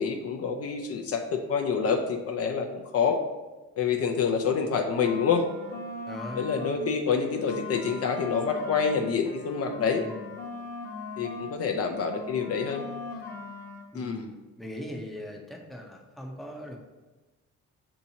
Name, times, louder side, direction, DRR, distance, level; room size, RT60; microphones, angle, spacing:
voice 1, 0.0-3.2 3.8-5.4 6.4-10.0 11.2-12.8 13.9-14.3, left 6 dB, 55° left, 4 dB, 0.5 m, -27 dB
sound 1, 4.6-6.9 7.2-11.6 11.8-13.9, left 3 dB, 30° left, 1.0 m, -40 dB
voice 2, 6.1-6.7 10.0-10.2 13.9-16.8, left 1 dB, ahead, 1 dB, 0.6 m, -40 dB
6.1 x 2.8 x 2.7 m, 1.2 s
cardioid pair, 90°, 30 cm